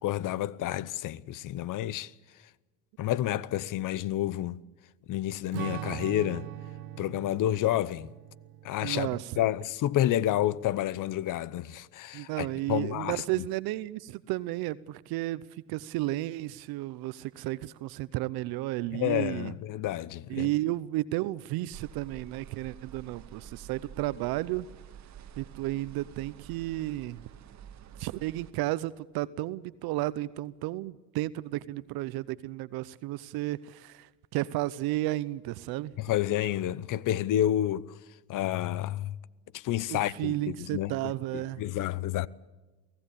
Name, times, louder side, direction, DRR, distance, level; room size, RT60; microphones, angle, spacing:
voice 1, 0.0-2.1 3.0-4.6 5.1-6.5 7.0-8.1 8.6-13.2 18.9-20.5 36.0-38.0 38.3-39.2 39.5-42.3, left 13 dB, 50° left, 0.9 m, -30 dB
Strum, 5.5-10.2, right 13 dB, 90° right, 1.3 m, -42 dB
voice 2, 8.8-9.4 12.1-19.5 20.3-24.7 25.4-27.2 28.0-36.0 39.9-41.6, right 17 dB, 65° right, 0.8 m, -33 dB
sound 1, 21.7-28.5, right 9 dB, 45° right, 1.7 m, -49 dB
24.0 x 16.5 x 8.5 m
supercardioid pair, 100°, 40 cm